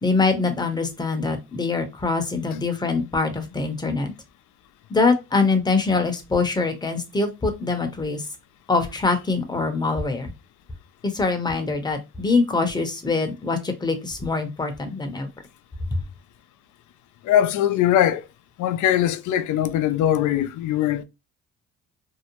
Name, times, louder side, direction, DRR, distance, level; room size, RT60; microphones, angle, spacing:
voice 1, 0.0-4.1 4.9-8.2 8.7-10.3 11.0-15.3 15.9-16.0, left 3 dB, 15° left, 0.7 m, -23 dB
voice 2, 17.2-18.3 18.6-21.0, left 11 dB, 75° left, 0.5 m, -21 dB
2.7 x 2.0 x 2.9 m
cardioid pair, 90°, 30 cm